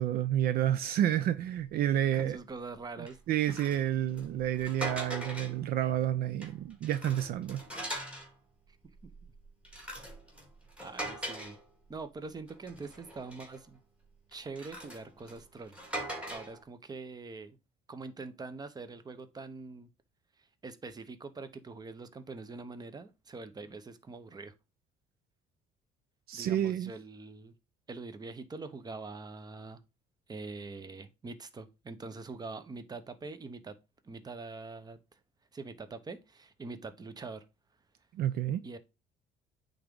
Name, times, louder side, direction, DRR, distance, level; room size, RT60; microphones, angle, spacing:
voice 1, 0.0-2.4 3.0-7.6 26.3-26.9 38.1-38.6, right 11 dB, 65° right, 0.5 m, -30 dB
sound 1, 1.7-1.8 2.3-2.5 3.1-5.7 6.2-8.3 8.8-12.1 12.5-13.7 14.3-16.6, right 1 dB, 5° right, 2.1 m, -42 dB
voice 2, 2.1-3.2 9.2-9.3 10.8-11.6 11.9-13.8 14.3-15.8 16.3-17.6 17.9-19.9 20.6-24.5 26.3-27.5 27.9-29.8 30.3-33.8 34.0-35.2 35.5-37.4 38.6-38.8, right 3 dB, 25° right, 0.8 m, -44 dB
8.7 x 3.6 x 3.7 m
cardioid pair, 110°, 17 cm